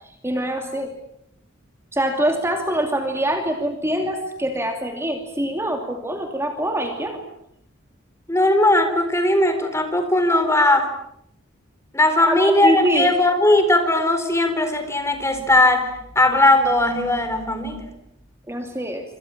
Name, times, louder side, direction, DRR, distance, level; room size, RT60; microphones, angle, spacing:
voice 1, 0.2-0.9 1.9-7.2 12.2-13.1 18.5-19.0, equal, 15° right, 4 dB, 2.7 m, -24 dB
voice 2, 8.3-10.9 11.9-15.9 16.2-17.8, left 1 dB, 15° left, 8 dB, 4.0 m, -18 dB
27.5 x 26.0 x 7.4 m, 0.75 s
head